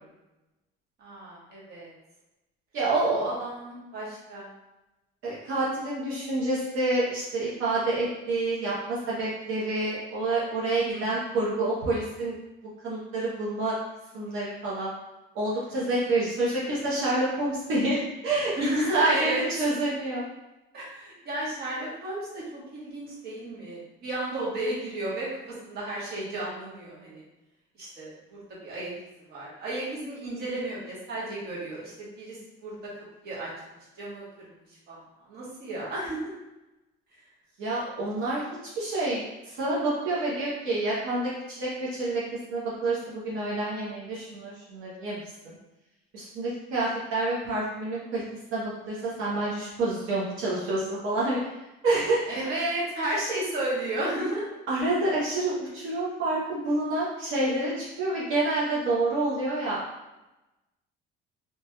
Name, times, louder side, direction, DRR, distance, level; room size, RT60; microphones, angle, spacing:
voice 1, 1.0-1.9 3.1-4.5 10.9-11.1 15.7-15.9 18.6-19.4 20.7-27.2 27.8-28.9 29.3-32.8 33.2-33.5 33.9-36.3 52.3-54.4, right 1 dB, 50° right, -6 dB, 1.1 m, -33 dB
voice 2, 2.7-3.1 5.2-12.3 12.8-13.7 14.1-14.9 15.3-18.5 18.9-19.3 19.6-20.2 37.6-38.4 38.8-42.2 42.5-45.2 45.4-45.5 46.1-48.2 48.5-51.5 51.8-52.5 54.7-59.8, right 2 dB, 75° right, -7 dB, 0.8 m, -28 dB
3.0 x 2.9 x 2.2 m, 1.0 s
cardioid pair, 145°, 21 cm